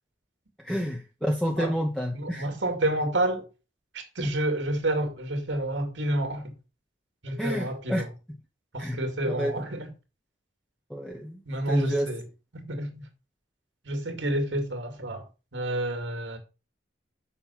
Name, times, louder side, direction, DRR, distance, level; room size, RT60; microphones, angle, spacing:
voice 1, 0.6-2.5 7.4-8.0 8.8-9.0 9.3-9.6 10.9-11.4 11.7-12.1, equal, 5° left, 1.0 m, -29 dB
voice 2, 2.1-3.5 3.9-6.5 7.2-8.1 8.7-9.9 11.5-12.3 12.5-13.1 13.8-15.2 15.5-16.4, right 1 dB, 75° right, 2.4 m, -29 dB
7.1 x 6.2 x 5.7 m
head